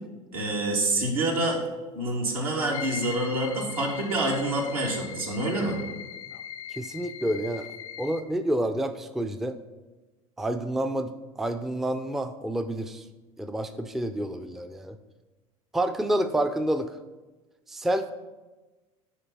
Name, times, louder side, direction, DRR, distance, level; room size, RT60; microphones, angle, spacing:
voice 1, 0.3-1.6 1.9-5.8, right 1 dB, 80° right, -1 dB, 1.8 m, -27 dB
sound 1, 2.7-8.2, left 8 dB, 75° left, 0.5 m, -40 dB
voice 2, 6.8-7.7 8.0-9.6 10.4-11.1 11.4-13.0 13.4-15.0 15.7-16.9 17.7-18.1, right 1 dB, ahead, 9 dB, 0.4 m, -28 dB
9.5 x 3.3 x 5.4 m, 1.2 s
hypercardioid pair, 80°, 18 cm